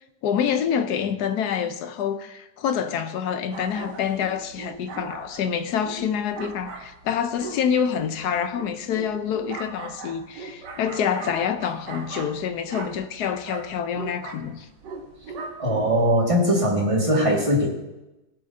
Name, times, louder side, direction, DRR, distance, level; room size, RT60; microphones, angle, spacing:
voice 1, 0.2-14.7, left 8 dB, 70° left, 1.2 m, -27 dB
sound 1, 3.5-16.1, right 4 dB, 70° right, 1.7 m, -39 dB
voice 2, 15.6-17.7, equal, 20° right, 1.8 m, -20 dB
17.0 x 7.6 x 2.7 m
omnidirectional pair, 1.9 m